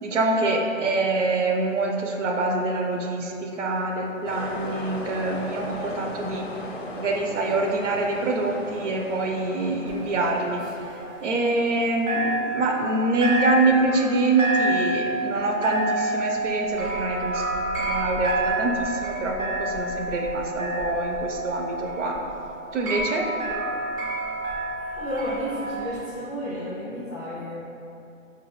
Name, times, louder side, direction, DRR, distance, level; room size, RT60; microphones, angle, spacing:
voice 1, 0.0-6.7 7.0-17.4 17.8-22.2 22.7-23.3, right 2 dB, 65° right, 1 dB, 0.6 m, -25 dB
sound 1, 4.2-11.3, left 2 dB, 55° left, 0.5 m, -37 dB
sound 2, 9.9-11.8 12.1-26.0, right 1 dB, 85° right, 1.3 m, -29 dB
voice 2, 24.8-27.6, equal, ahead, -18 dB, 0.4 m, -32 dB
3.9 x 2.4 x 2.9 m, 2.7 s
hypercardioid pair, 145°, 39 cm